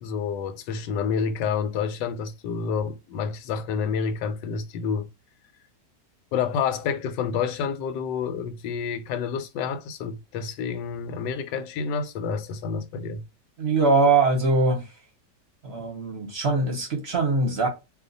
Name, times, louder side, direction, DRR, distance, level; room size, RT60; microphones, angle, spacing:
voice 1, 0.0-5.1 6.3-13.2, left 6 dB, 90° left, 1.2 m, -29 dB
voice 2, 13.6-14.9 15.6-17.7, right 3 dB, 45° right, 0.9 m, -22 dB
2.7 x 2.2 x 3.8 m
omnidirectional pair, 1.8 m